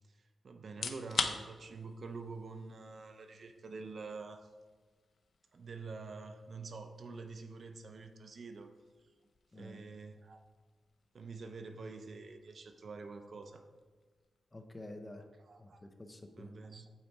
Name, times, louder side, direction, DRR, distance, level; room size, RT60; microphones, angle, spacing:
voice 1, 0.1-4.5 5.5-8.7 9.5-10.4 11.1-13.6 15.2-15.8 16.4-16.9, right 4 dB, 50° right, 6 dB, 0.6 m, -47 dB
sound 1, 0.7-15.5, left 5 dB, 60° left, 0.6 m, -47 dB
voice 2, 14.5-15.2 15.6-16.6, left 1 dB, 20° left, 5 dB, 0.7 m, -49 dB
8.8 x 4.0 x 4.6 m, 1.4 s
wide cardioid pair, 115°, 0 cm